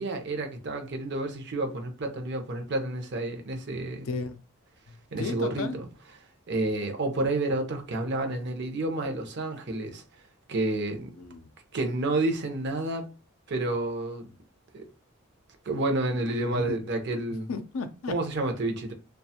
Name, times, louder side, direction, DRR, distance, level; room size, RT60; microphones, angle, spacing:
voice 1, 0.0-4.1 5.1-5.8 6.5-10.0 10.5-11.1 11.7-13.1 13.5-14.3 14.7-14.9 15.6-17.5 18.1-18.9, right 2 dB, 50° right, 0.6 m, -30 dB
voice 2, 4.0-4.4 4.9-5.8 11.2-11.5 16.5-16.8 17.5-18.1, left 4 dB, 65° left, 0.4 m, -34 dB
2.4 x 2.2 x 2.7 m
head